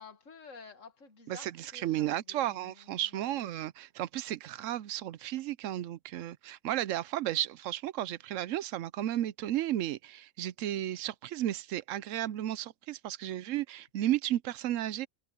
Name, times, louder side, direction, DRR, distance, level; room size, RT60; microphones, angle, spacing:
voice 1, 0.0-3.5, left 4 dB, 80° left, 2.3 m, -52 dB
voice 2, 1.3-15.1, right 13 dB, 80° right, 1.0 m, -33 dB
omnidirectional pair, 1.3 m